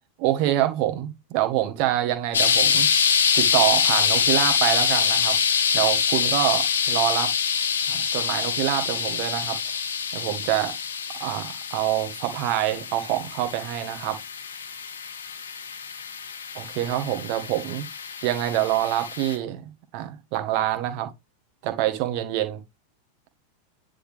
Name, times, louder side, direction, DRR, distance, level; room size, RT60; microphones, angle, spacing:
voice 1, 0.2-2.9 3.3-5.4 5.7-7.3 7.9-9.6 10.1-10.7 11.2-14.2 16.5-17.9 18.2-19.6 19.9-21.1 21.6-22.6, right 13 dB, 45° right, 1.5 m, -26 dB
sound 1, 2.3-19.4, left 6 dB, 70° left, 1.1 m, -25 dB
10.0 x 3.9 x 3.2 m
figure-of-eight pair, 90°, 0 cm